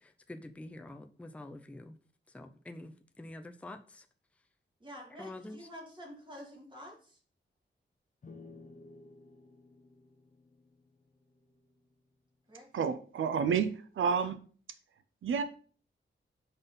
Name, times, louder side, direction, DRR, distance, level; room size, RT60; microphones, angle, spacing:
voice 1, 0.0-2.0 2.3-4.1 5.2-5.6, left 1 dB, 5° left, 0.4 m, -47 dB
voice 2, 4.8-7.2 12.5-12.7 14.2-14.3, equal, 25° right, 2.1 m, -48 dB
sound 1, 8.2-11.8, left 3 dB, 40° left, 0.7 m, -55 dB
voice 3, 12.7-14.4 15.2-15.4, right 6 dB, 85° right, 0.5 m, -30 dB
5.3 x 4.1 x 5.4 m
wide cardioid pair, 130°, 20 cm